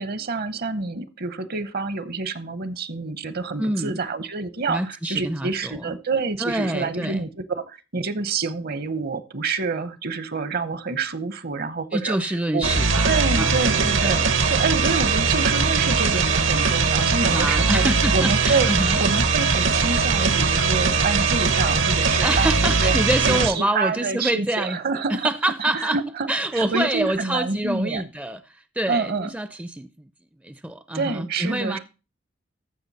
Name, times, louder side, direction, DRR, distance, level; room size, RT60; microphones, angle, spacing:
voice 1, 0.0-12.7 13.1-17.8 18.1-18.7 19.0-22.5 22.8-22.9 23.3-25.3 25.6-28.0 28.9-29.3 30.9-31.8, right 4 dB, 55° right, 0.8 m, -27 dB
voice 2, 3.6-4.0 4.7-6.0 6.4-7.3 11.9-13.6 14.0-14.3 17.2-19.0 22.2-24.8 25.1-26.0 26.3-30.1 30.4-31.8, right 1 dB, 10° right, 0.4 m, -26 dB
sound 1, 12.6-23.5, right 4 dB, 80° right, 1.2 m, -20 dB
14.5 x 6.0 x 4.1 m
head